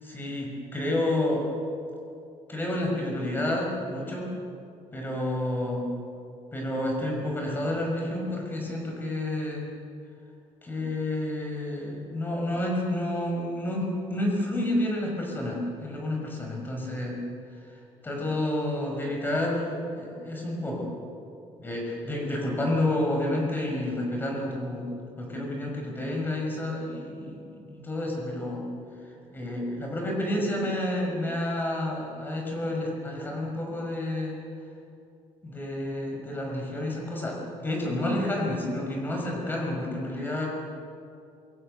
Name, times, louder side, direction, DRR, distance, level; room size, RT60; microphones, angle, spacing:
voice 1, 0.0-1.5 2.5-4.3 4.9-5.8 6.5-9.6 10.6-17.2 18.0-20.9 21.6-24.9 25.2-28.6 29.3-34.3 35.4-40.5, left 1 dB, 15° left, -1 dB, 6.1 m, -30 dB
27.0 x 24.5 x 6.9 m, 2.5 s
cardioid pair, 175°, 12 cm